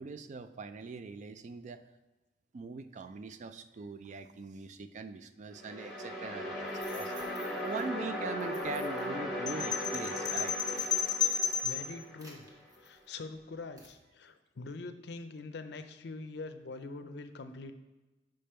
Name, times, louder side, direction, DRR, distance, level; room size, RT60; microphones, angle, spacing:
voice 1, 0.0-1.8 2.5-7.1 7.6-10.6, right 4 dB, 45° right, 11 dB, 0.3 m, -42 dB
sound 1, 5.5-12.5, left 1 dB, ahead, 1.5 m, -38 dB
sound 2, 6.6-7.8 8.4-9.1 9.8-10.0 10.4-13.3 13.8-14.0, right 1 dB, 20° right, 1.1 m, -55 dB
sound 3, 9.5-11.9, left 7 dB, 20° left, 0.9 m, -32 dB
voice 2, 11.6-12.4 12.8-17.7, left 3 dB, 70° left, 9 dB, 0.5 m, -44 dB
5.5 x 5.1 x 4.3 m, 1.1 s
head